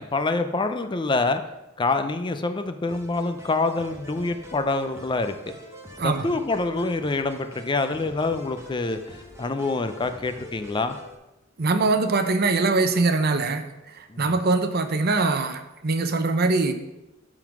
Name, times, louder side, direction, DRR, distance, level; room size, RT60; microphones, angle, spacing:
voice 1, 0.0-1.4 1.8-5.6 6.0-9.0 9.4-11.0 14.1-14.2, left 3 dB, 25° left, 8 dB, 0.5 m, -26 dB
sound 1, 2.9-11.2, left 1 dB, 15° right, 1.3 m, -45 dB
voice 2, 6.0-6.3 11.6-16.7, right 3 dB, 50° right, 8 dB, 0.8 m, -23 dB
11.5 x 3.9 x 6.0 m, 0.98 s
head